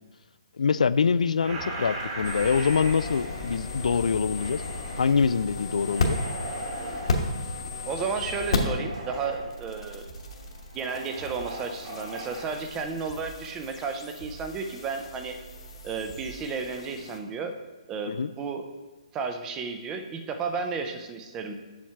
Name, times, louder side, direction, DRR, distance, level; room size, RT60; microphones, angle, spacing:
voice 1, 0.6-4.6 5.0-6.2 18.1-18.3, left 5 dB, 85° left, 16 dB, 0.3 m, -24 dB
sound 1, 1.4-5.2 5.7-7.2 8.4-9.5 10.8-12.6, right 1 dB, 35° right, 1.5 m, -38 dB
sound 2, 1.7-16.8, right 3 dB, 85° right, 1.8 m, -47 dB
sound 3, 2.2-8.9 9.1-17.2, left 3 dB, 55° left, 1.2 m, -34 dB
voice 2, 7.8-10.0 10.7-15.4 15.8-17.6 17.9-18.6 19.1-21.5, right 5 dB, 10° right, 6 dB, 0.4 m, -33 dB
7.2 x 6.0 x 4.5 m, 1.2 s
hypercardioid pair, 170°, 4 cm